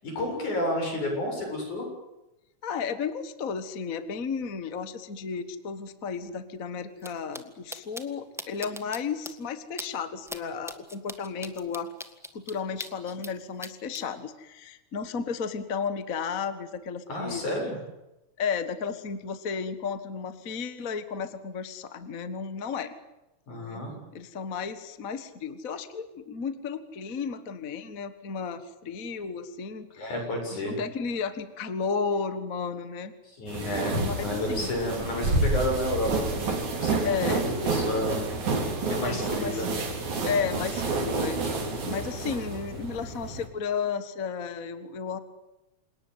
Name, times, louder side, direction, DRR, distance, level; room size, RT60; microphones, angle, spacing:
voice 1, 0.0-1.9 17.1-17.8 23.5-23.9 30.0-30.8 33.4-37.1 37.4-38.3 38.9-39.8, left 1 dB, 80° left, 2 dB, 8.9 m, -31 dB
voice 2, 2.6-11.9 12.3-17.4 18.4-22.9 23.5-23.8 24.1-30.1 30.5-33.1 34.0-34.7 37.0-37.6 39.0-39.7 40.2-41.6 41.9-45.2, left 6 dB, 40° left, 11 dB, 1.4 m, -33 dB
sound 1, 7.0-7.1 7.3-7.4 7.7-8.0 8.4-9.0 9.2-9.3 9.8-9.9 10.3-10.4 10.7-13.3 13.6-14.0, equal, ahead, 0.5 m, -38 dB
sound 2, 33.5-43.5, right 3 dB, 70° right, 5.0 m, -29 dB
28.0 x 18.5 x 9.4 m, 0.97 s
omnidirectional pair, 3.4 m